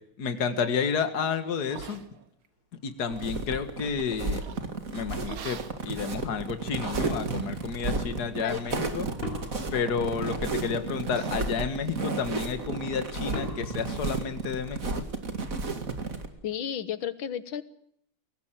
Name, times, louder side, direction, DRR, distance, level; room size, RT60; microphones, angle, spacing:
voice 1, 0.2-2.0 2.8-4.4 4.9-9.1 9.7-14.9, left 6 dB, 50° left, 9 dB, 2.2 m, -31 dB
sound 1, 1.7-2.5 2.8-3.4 4.4-4.8 5.2-5.8 6.4-6.5 7.0-7.4 7.9-8.1 8.7-9.4 9.7-10.2 10.6-10.8 11.0-12.9 13.2-13.6 13.8-13.9 14.3-14.4 14.8-15.0, right 7 dB, 80° right, 2.3 m, -46 dB
sound 2, 3.1-16.3, right 3 dB, 40° right, 2.6 m, -32 dB
sound 3, 9.2-10.7 13.3-15.2, left 2 dB, 25° left, 4.0 m, -41 dB
voice 2, 16.4-17.6, left 9 dB, 70° left, 14 dB, 2.0 m, -32 dB
23.0 x 18.5 x 7.6 m, 0.71 s
omnidirectional pair, 2.3 m